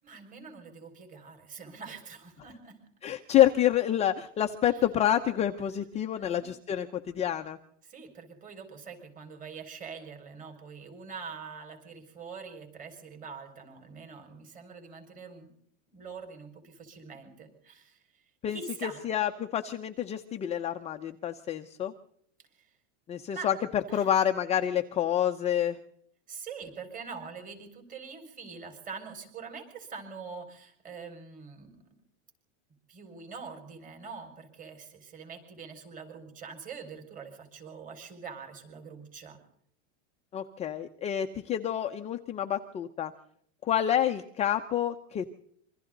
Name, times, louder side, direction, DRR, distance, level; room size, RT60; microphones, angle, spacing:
voice 1, 0.0-2.8 4.7-4.8 6.2-6.5 7.8-15.5 15.9-18.2 18.5-19.0 22.6-22.7 23.3-23.5 23.9-24.1 26.3-31.9 32.9-39.4, right 5 dB, 20° right, 5 dB, 5.5 m, -44 dB
voice 2, 3.0-7.6 18.4-21.9 23.1-23.5 23.9-25.8 40.3-43.1 43.7-45.2, left 11 dB, 15° left, 5 dB, 0.8 m, -28 dB
26.5 x 24.5 x 4.0 m, 0.67 s
supercardioid pair, 165°, 38 cm